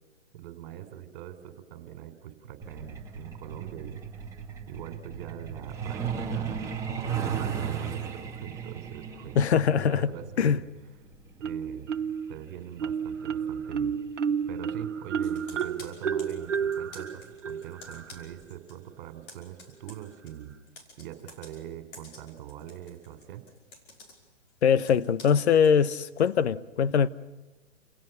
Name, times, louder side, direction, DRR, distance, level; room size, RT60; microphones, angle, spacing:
voice 1, 0.3-4.0 4.7-9.4 9.8-10.5 11.4-11.9 12.3-13.9 14.5-20.5 21.0-23.4, right 11 dB, 40° right, 3.8 m, -43 dB
Truck, 2.6-14.9 16.1-16.3 16.7-16.9 17.2-17.5 17.9-18.0 18.4-18.5, right 7 dB, 10° right, 2.3 m, -36 dB
voice 2, 9.4-10.1 10.4-10.6 24.6-27.1, left 7 dB, 65° left, 1.1 m, -22 dB
Marimba xylophone, 11.4-12.3 12.8-18.3, right 7 dB, 75° right, 1.3 m, -31 dB
Computer keyboard, 15.2-18.8 19.1-26.3, left 2 dB, 35° left, 5.5 m, -51 dB
29.5 x 17.0 x 6.9 m
hypercardioid pair, 140°, 36 cm